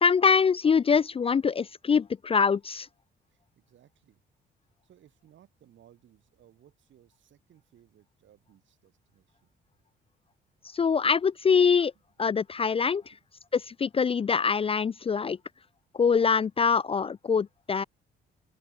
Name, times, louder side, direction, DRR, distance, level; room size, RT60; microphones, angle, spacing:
voice 1, 0.0-2.9 10.7-11.9 12.2-13.0 13.5-15.4 16.0-17.8, left 6 dB, 30° left, 0.4 m, -24 dB
voice 2, 3.3-4.2 4.8-9.5, right 11 dB, 70° right, 8.0 m, -61 dB
open air
cardioid pair, 90°, 20 cm